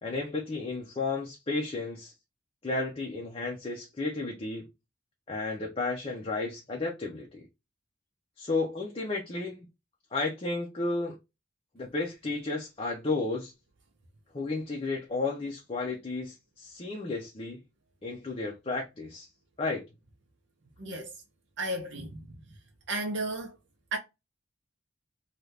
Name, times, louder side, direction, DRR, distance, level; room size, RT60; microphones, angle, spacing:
voice 1, 0.0-2.1 2.6-4.7 5.3-7.4 8.4-9.7 10.1-11.2 11.7-13.5 14.3-17.6 18.0-19.3 19.6-19.8, left 3 dB, 30° left, 0.6 m, -33 dB
voice 2, 20.8-21.1 21.6-22.3 22.9-23.6 23.9-24.0, right 2 dB, 70° right, 0.7 m, -33 dB
2.7 x 2.4 x 3.3 m
head